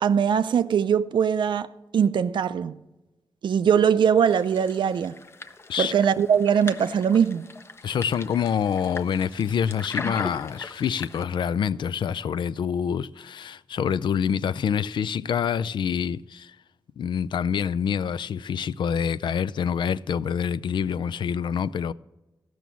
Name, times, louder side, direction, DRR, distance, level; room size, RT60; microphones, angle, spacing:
voice 1, 0.0-2.8 3.4-5.2 5.8-7.5, right 7 dB, 85° right, 0.5 m, -21 dB
sound 1, 4.2-11.2, left 3 dB, 30° left, 0.6 m, -39 dB
voice 2, 7.8-16.6 17.0-21.9, left 7 dB, 80° left, 0.4 m, -26 dB
14.0 x 6.2 x 7.0 m
wide cardioid pair, 105°, 8 cm